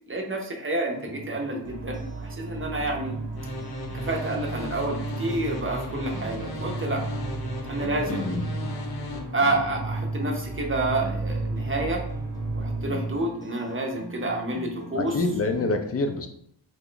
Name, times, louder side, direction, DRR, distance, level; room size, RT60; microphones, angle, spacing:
voice 1, 0.1-3.2 3.9-7.0 7.7-8.3 9.3-12.0 12.6-15.1, right 2 dB, 25° right, 0 dB, 0.6 m, -29 dB
sound 1, 0.9-15.7, equal, 10° left, 0.7 m, -42 dB
sound 2, 1.6-13.2, right 3 dB, 60° right, 0.8 m, -34 dB
sound 3, 3.4-9.2, left 1 dB, 55° left, 0.8 m, -36 dB
voice 2, 8.1-8.4 14.9-16.3, left 3 dB, 35° left, 6 dB, 0.4 m, -26 dB
2.9 x 2.2 x 3.8 m, 0.67 s
wide cardioid pair, 90°, 47 cm